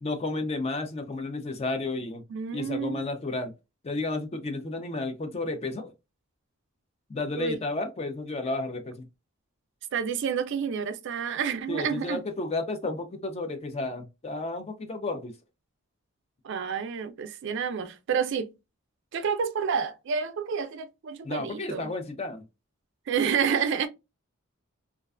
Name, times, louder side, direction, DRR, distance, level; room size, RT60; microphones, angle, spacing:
voice 1, 0.0-2.2 2.5-3.5 3.8-5.9 7.1-9.1 11.7-15.3 21.2-22.4, left 2 dB, 30° left, 0.4 m, -32 dB
voice 2, 2.3-3.0 7.4-7.6 9.9-12.2 16.4-18.5 19.1-21.9 23.1-23.9, right 6 dB, 55° right, 0.4 m, -29 dB
2.4 x 2.2 x 2.3 m
head